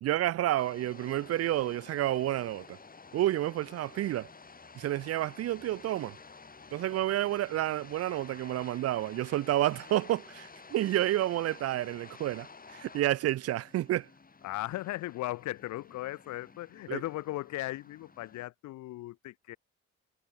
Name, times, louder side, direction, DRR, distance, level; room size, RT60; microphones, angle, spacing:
voice 1, 0.0-2.8 3.1-4.3 4.8-6.2 6.7-14.1 16.9-17.0, right 14 dB, 55° right, 0.4 m, -30 dB
sound 1, 0.6-18.5, left 4 dB, 30° left, 4.6 m, -52 dB
voice 2, 14.4-19.6, left 17 dB, 70° left, 0.5 m, -37 dB
cardioid pair, 90°, 30 cm